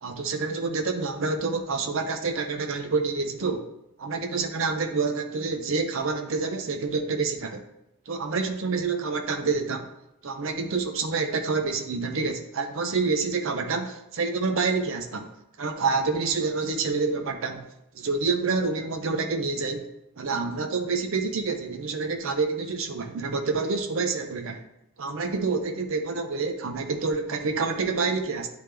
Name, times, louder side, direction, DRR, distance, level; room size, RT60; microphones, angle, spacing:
voice 1, 0.0-3.7 4.0-7.6 8.1-9.9 10.2-15.3 15.6-17.6 17.9-19.9 20.2-24.6 25.0-28.5, right 4 dB, 65° right, 6 dB, 0.6 m, -27 dB
9.0 x 3.4 x 3.3 m, 0.84 s
head